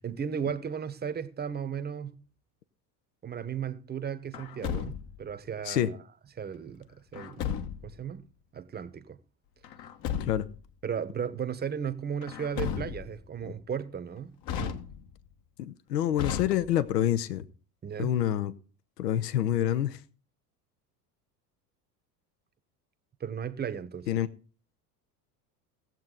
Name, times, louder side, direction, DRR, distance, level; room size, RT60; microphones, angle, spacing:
voice 1, 0.0-2.2 3.2-4.9 5.2-6.0 6.4-7.5 7.8-8.2 8.5-9.2 10.8-14.8 17.8-18.2 23.2-24.1, right 7 dB, 20° right, 0.9 m, -35 dB
Truck, 4.3-5.3 7.1-8.0 9.6-10.6 12.2-13.3 14.4-15.3 16.2-17.0, left 8 dB, 45° left, 1.2 m, -35 dB
voice 2, 15.6-17.5 18.0-18.5 19.0-20.0 24.1-24.3, left 11 dB, 80° left, 0.8 m, -27 dB
17.5 x 7.6 x 3.8 m
hypercardioid pair, 75°, 49 cm